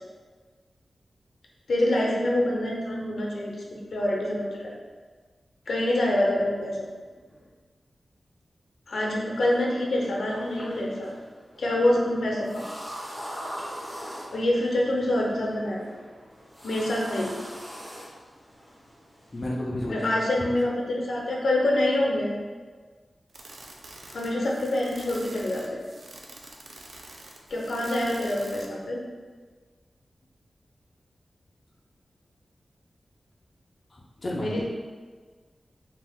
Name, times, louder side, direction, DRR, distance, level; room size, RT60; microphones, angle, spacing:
voice 1, 1.7-3.6 3.9-4.7 5.7-6.9 8.9-11.1 11.6-12.6 14.3-15.8 16.6-17.3 19.9-22.4 24.1-25.8 27.5-29.0 34.4-34.6, left 1 dB, 85° left, -2 dB, 0.6 m, -26 dB
sound 1, 9.4-19.5, equal, 20° right, 0.8 m, -42 dB
voice 2, 19.3-20.1 33.9-34.6, left 1 dB, 40° left, -3 dB, 0.4 m, -32 dB
sound 2, 23.3-28.8, right 2 dB, 65° right, 0.4 m, -46 dB
2.8 x 2.5 x 3.4 m, 1.5 s
wide cardioid pair, 110°, 0 cm